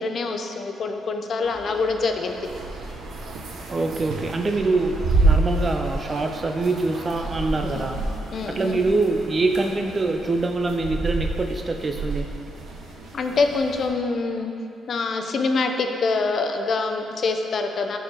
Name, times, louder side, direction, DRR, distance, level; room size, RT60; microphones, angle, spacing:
voice 1, 0.0-2.4 7.7-8.0 8.3-8.8 13.1-14.5 14.9-18.0, left 4 dB, 55° left, 5 dB, 0.7 m, -25 dB
sound 1, 1.4-8.1, right 3 dB, 60° right, 0.9 m, -42 dB
sound 2, 2.4-13.9, right 2 dB, 80° right, 1.2 m, -28 dB
voice 2, 3.7-8.0 8.5-12.3, right 3 dB, 30° right, 4 dB, 0.5 m, -24 dB
11.0 x 4.5 x 4.5 m, 2.6 s
cardioid pair, 90°, 0 cm